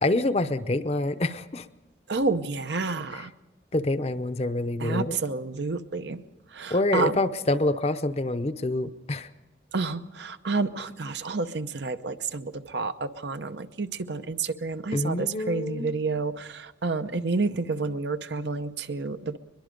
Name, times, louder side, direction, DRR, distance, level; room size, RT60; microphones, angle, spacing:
voice 1, 0.0-1.7 3.1-3.3 3.7-5.2 6.7-9.3 14.9-15.9, left 2 dB, 35° left, 12 dB, 0.7 m, -26 dB
voice 2, 2.1-3.3 4.8-6.2 6.5-7.2 9.7-19.4, right 3 dB, 75° right, 10 dB, 0.8 m, -30 dB
22.5 x 22.0 x 5.2 m, 1.0 s
head